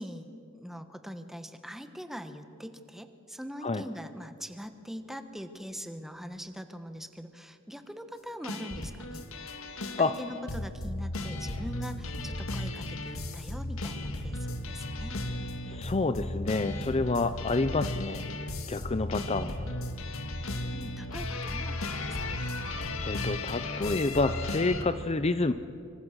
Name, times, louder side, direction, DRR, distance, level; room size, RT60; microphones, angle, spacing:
voice 1, 0.0-9.3 10.0-15.1 20.7-22.5, equal, ahead, 8 dB, 1.2 m, -42 dB
sound 1, 8.4-24.8, left 2 dB, 70° left, 1.9 m, -35 dB
voice 2, 15.7-18.2 18.7-19.5 23.0-25.5, left 3 dB, 30° left, 11 dB, 0.6 m, -28 dB
25.0 x 25.0 x 6.6 m, 2.5 s
head